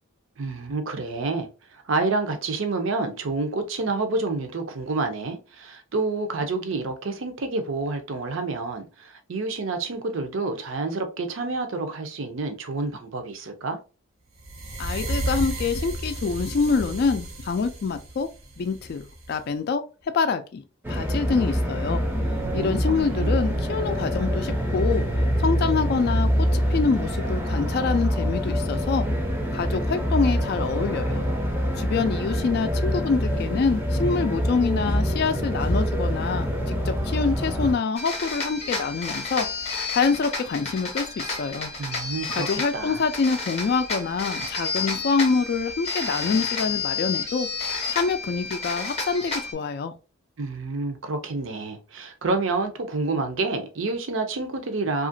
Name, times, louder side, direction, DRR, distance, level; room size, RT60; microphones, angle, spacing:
voice 1, 0.4-13.8 22.3-23.4 41.7-43.1 50.4-55.1, right 3 dB, 65° right, 0.5 m, -29 dB
sound 1, 14.4-19.4, right 1 dB, 85° right, 0.9 m, -33 dB
voice 2, 14.8-18.3 18.6-19.0 19.3-19.8 20.1-22.1 22.5-25.0 25.4-29.1 29.5-31.2 31.8-39.5 39.9-41.7 42.3-47.5 47.9-49.9, left 5 dB, 50° left, 0.3 m, -26 dB
sound 2, 20.8-37.7, equal, 10° right, 0.5 m, -25 dB
sound 3, 38.0-49.5, left 4 dB, 30° left, 0.7 m, -31 dB
2.8 x 2.4 x 2.6 m
head